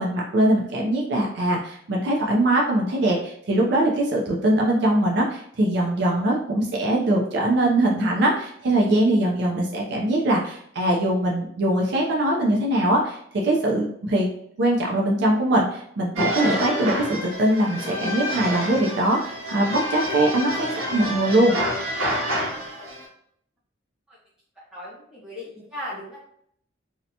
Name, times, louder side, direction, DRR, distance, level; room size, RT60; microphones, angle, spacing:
voice 1, 0.0-13.2 13.4-14.3 14.6-21.5, right 1 dB, 55° right, -2 dB, 0.4 m, -22 dB
sound 1, 16.2-23.1, equal, 85° right, 0.8 m, -28 dB
voice 2, 24.5-26.2, left 1 dB, 5° right, -10 dB, 1.0 m, -37 dB
2.7 x 2.1 x 2.7 m, 0.67 s
head